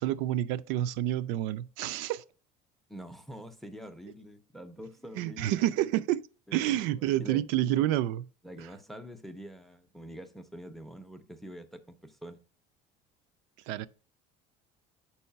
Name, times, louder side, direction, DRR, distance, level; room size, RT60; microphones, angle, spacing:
voice 1, 0.0-2.2 5.1-6.2 6.5-8.2 13.7-13.9, right 13 dB, 90° right, 0.4 m, -28 dB
voice 2, 2.9-5.6 6.5-7.4 8.4-12.4, equal, ahead, 0.5 m, -45 dB
5.5 x 4.6 x 5.6 m
cardioid pair, 165°, 16 cm